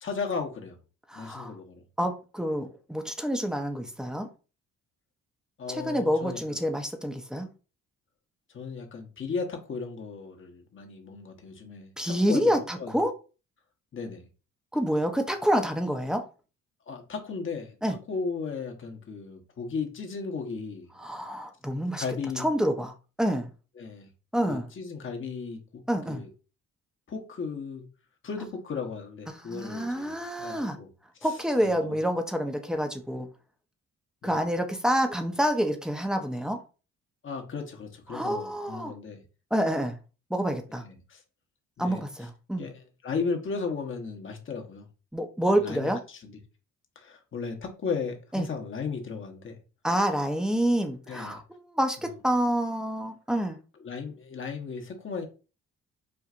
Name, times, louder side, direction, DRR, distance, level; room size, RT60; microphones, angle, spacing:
voice 1, 0.0-0.8 1.1-1.8 5.6-6.4 8.5-12.9 13.9-14.3 16.9-20.9 22.0-22.5 23.8-24.1 24.5-25.8 26.1-26.3 27.1-27.8 28.2-30.9 31.6-32.0 34.2-34.4 37.2-39.2 40.8-41.2 41.8-42.0 42.6-42.7 43.0-44.9 45.5-46.3 47.0-49.6 51.1-51.4 53.8-55.2, left 5 dB, 40° left, 1.0 m, -35 dB
voice 2, 1.1-1.6 2.0-4.3 5.7-7.5 12.0-13.1 14.7-16.2 17.8-18.0 21.0-22.0 22.4-23.5 24.3-24.7 25.9-26.2 29.3-30.8 31.2-33.3 34.2-36.6 38.1-39.0 39.5-40.0 40.3-40.8 41.8-42.7 45.1-46.0 48.3-48.5 49.8-53.6, equal, ahead, 0.6 m, -28 dB
4.4 x 2.5 x 2.4 m
cardioid pair, 90°, 30 cm